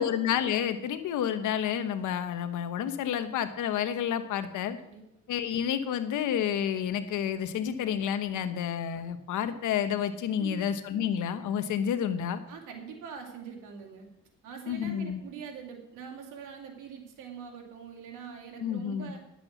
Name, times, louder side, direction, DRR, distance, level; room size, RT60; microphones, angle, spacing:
voice 1, 0.0-4.8 5.3-12.4 14.7-15.2 18.6-19.1, left 9 dB, 80° left, 10 dB, 1.1 m, -30 dB
voice 2, 10.4-10.7 12.5-14.1 14.4-19.2, right 6 dB, 85° right, 2 dB, 2.6 m, -43 dB
11.0 x 7.6 x 7.1 m, 0.86 s
cardioid pair, 90°, 30 cm